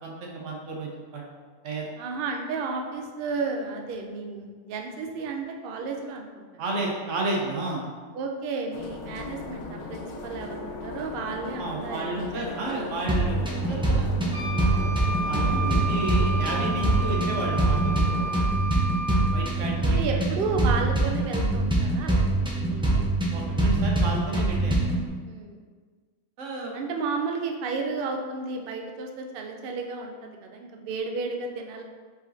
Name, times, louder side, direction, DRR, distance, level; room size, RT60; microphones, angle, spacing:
voice 1, 0.0-1.2 1.6-1.8 6.6-7.8 11.6-13.4 13.7-14.1 15.3-17.9 19.3-20.0 23.3-24.8 26.4-26.7, right 2 dB, 60° right, -2 dB, 1.1 m, -32 dB
voice 2, 2.0-6.5 6.8-6.9 8.1-12.5 12.8-12.9 15.3-15.8 18.0-18.5 19.8-23.1 25.2-25.6 26.7-31.8, right 4 dB, 90° right, 3 dB, 0.4 m, -33 dB
sound 1, 8.7-18.4, left 3 dB, 70° left, 1.0 m, -38 dB
sound 2, 13.1-25.1, right 2 dB, 5° right, 0.4 m, -24 dB
Wind instrument woodwind instrument, 14.3-19.5, right 2 dB, 30° right, 1.2 m, -32 dB
4.9 x 4.1 x 2.7 m, 1.5 s
omnidirectional pair, 1.6 m